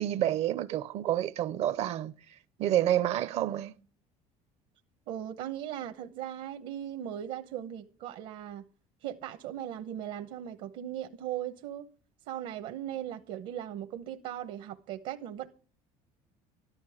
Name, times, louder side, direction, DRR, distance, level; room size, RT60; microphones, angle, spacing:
voice 1, 0.0-2.1 2.6-3.7, right 12 dB, 55° right, 0.6 m, -28 dB
voice 2, 5.1-8.6 9.0-11.9 12.3-15.5, right 11 dB, 70° right, 0.9 m, -38 dB
13.5 x 11.5 x 4.9 m
cardioid pair, 155°, 13 cm